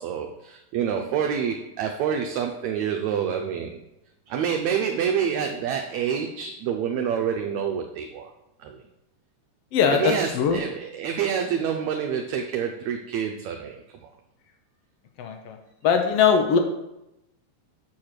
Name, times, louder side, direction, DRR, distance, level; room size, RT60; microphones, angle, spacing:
voice 1, 0.0-3.8 4.3-8.3 8.6-8.8 9.9-14.1, right 8 dB, 75° right, 4 dB, 1.7 m, -27 dB
voice 2, 9.7-10.6 15.2-15.6 15.8-16.6, left 6 dB, 75° left, 4 dB, 1.4 m, -21 dB
7.6 x 4.5 x 6.5 m, 0.87 s
omnidirectional pair, 3.7 m